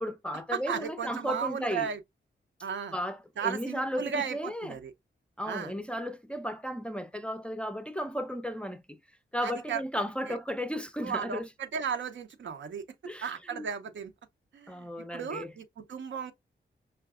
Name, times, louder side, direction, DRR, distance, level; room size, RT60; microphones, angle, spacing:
voice 1, 0.0-1.9 2.9-4.8 5.4-9.0 9.3-11.5 13.0-13.7 14.7-15.5, equal, 5° left, 0.4 m, -34 dB
voice 2, 0.5-2.0 2.6-2.9 3.4-4.9 5.5-5.7 9.4-9.8 10.3-10.4 11.0-12.8 13.2-14.1 14.5-16.3, right 7 dB, 85° right, 0.6 m, -35 dB
5.5 x 2.3 x 2.3 m
wide cardioid pair, 105°, 19 cm